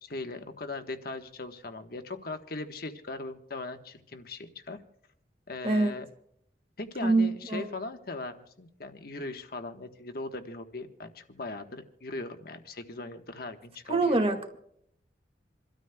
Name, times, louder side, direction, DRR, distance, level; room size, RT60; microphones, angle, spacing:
voice 1, 0.0-4.8 5.5-6.0 6.8-14.2, left 2 dB, 55° left, 6 dB, 1.3 m, -39 dB
voice 2, 7.0-7.7 13.9-14.5, right 2 dB, 35° right, 5 dB, 1.9 m, -25 dB
28.0 x 13.0 x 2.3 m, 0.71 s
head